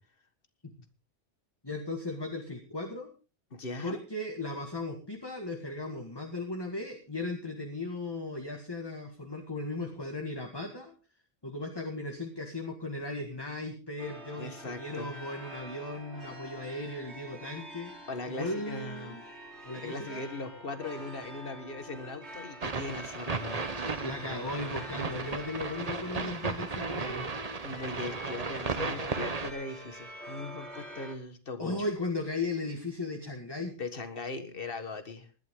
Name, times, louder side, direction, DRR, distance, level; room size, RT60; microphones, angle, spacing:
voice 1, 1.6-3.1 3.8-10.9 11.4-19.2 19.6-20.3 24.0-27.3 31.6-33.8, left 2 dB, 20° left, 3 dB, 1.9 m, -37 dB
voice 2, 3.5-4.0 14.3-15.1 18.1-19.2 19.7-24.0 27.6-31.9 33.8-35.3, left 3 dB, 50° left, 9 dB, 1.8 m, -40 dB
sound 1, 14.0-31.2, equal, 60° right, 2.8 m, -47 dB
sound 2, 22.6-29.5, right 4 dB, 35° right, 1.1 m, -35 dB
19.5 x 12.0 x 3.7 m, 0.35 s
omnidirectional pair, 1.3 m